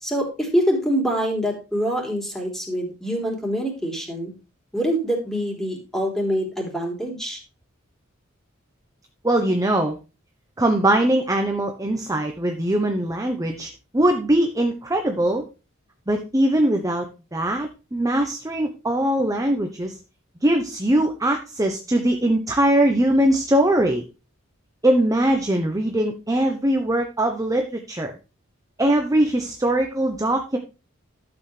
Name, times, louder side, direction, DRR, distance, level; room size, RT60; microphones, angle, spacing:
voice 1, 0.0-4.3 4.7-7.4, equal, ahead, 0 dB, 3.4 m, -25 dB
voice 2, 9.2-10.0 10.6-15.4 16.1-17.1 17.3-20.0 20.4-24.0 24.8-28.2 28.8-30.6, right 1 dB, 15° right, 4 dB, 0.9 m, -21 dB
12.0 x 8.0 x 3.3 m, 0.31 s
head